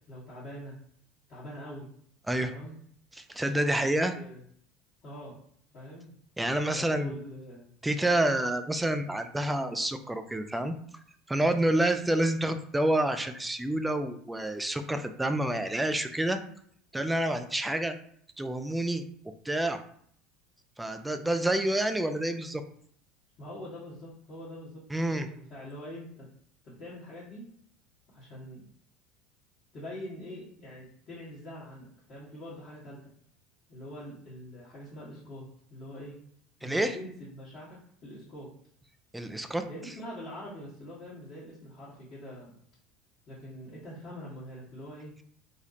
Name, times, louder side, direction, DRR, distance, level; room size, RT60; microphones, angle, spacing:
voice 1, 0.1-0.7 1.3-1.9 2.4-2.8 3.5-4.4 5.0-5.3 5.7-6.1 6.7-7.7 11.5-11.7 23.4-24.8 25.1-26.3 26.6-27.4 28.1-28.6 29.7-33.0 33.7-35.4 35.7-36.2 36.6-38.5 39.6-42.6 43.3-45.1, equal, 45° left, -9 dB, 1.3 m, -44 dB
voice 2, 3.2-4.1 6.4-7.2 7.8-10.7 11.3-16.4 16.9-17.9 18.4-19.0 19.5-19.8 20.8-22.6 24.9-25.3 36.6-37.0 39.1-39.6, right 1 dB, 10° right, 8 dB, 0.4 m, -28 dB
3.4 x 2.3 x 2.8 m, 0.64 s
figure-of-eight pair, 70°, 0 cm